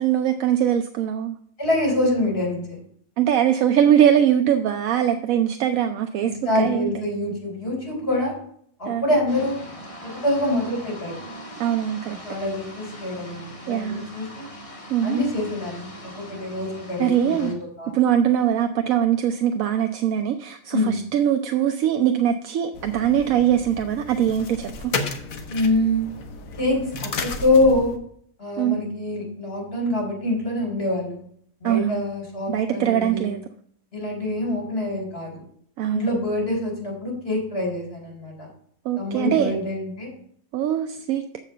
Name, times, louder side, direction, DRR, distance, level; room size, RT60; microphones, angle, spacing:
voice 1, 0.0-1.4 3.2-7.0 8.9-9.0 11.6-12.2 13.7-14.1 14.9-15.2 17.0-17.5 17.9-24.9 28.6-28.8 31.6-32.0 32.5-33.4 35.8-36.2 38.8-39.6 40.5-41.2, right 10 dB, 80° right, 6 dB, 1.0 m, -22 dB
voice 2, 1.6-2.8 6.2-8.3 8.8-9.6 10.0-11.2 12.1-14.5 15.0-15.9 16.2-17.9 20.7-21.0 25.5-26.0 26.6-27.9 28.4-31.2 31.6-33.4 33.9-35.4 35.9-38.5 39.0-40.1, left 1 dB, 45° left, -2 dB, 4.0 m, -25 dB
sound 1, 9.3-17.5, equal, 25° left, 1.5 m, -41 dB
sound 2, 22.7-28.0, left 4 dB, 75° left, 1.4 m, -33 dB
7.3 x 5.2 x 6.7 m, 0.63 s
omnidirectional pair, 1.4 m